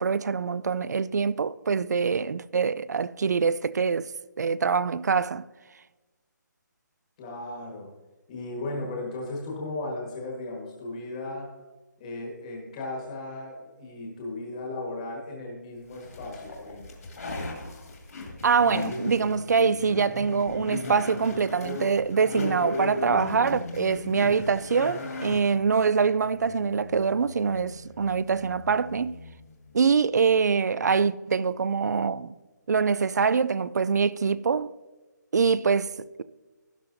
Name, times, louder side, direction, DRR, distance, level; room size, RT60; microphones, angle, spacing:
voice 1, 0.0-4.1 4.4-5.5 18.4-29.2 29.7-32.3 32.7-34.7 35.3-36.2, right 5 dB, 60° right, 0.4 m, -24 dB
voice 2, 7.2-7.9 8.3-11.5 12.0-16.9, left 2 dB, 20° left, 1.4 m, -36 dB
sound 1, 15.9-29.9, left 2 dB, 55° left, 2.2 m, -37 dB
12.5 x 10.5 x 2.6 m
hypercardioid pair, 170°, 10 cm